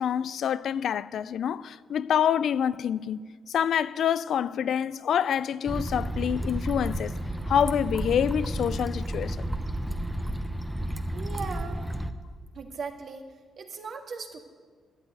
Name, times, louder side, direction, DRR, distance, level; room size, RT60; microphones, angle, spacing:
voice 1, 0.0-7.2 7.5-9.4, left 9 dB, 70° left, 0.4 m, -27 dB
sound 1, 5.7-12.1, right 1 dB, 5° right, 0.8 m, -32 dB
voice 2, 11.1-11.8 12.5-13.3 13.6-14.4, right 5 dB, 55° right, 1.8 m, -38 dB
12.0 x 9.3 x 9.4 m
cardioid pair, 100°, 0 cm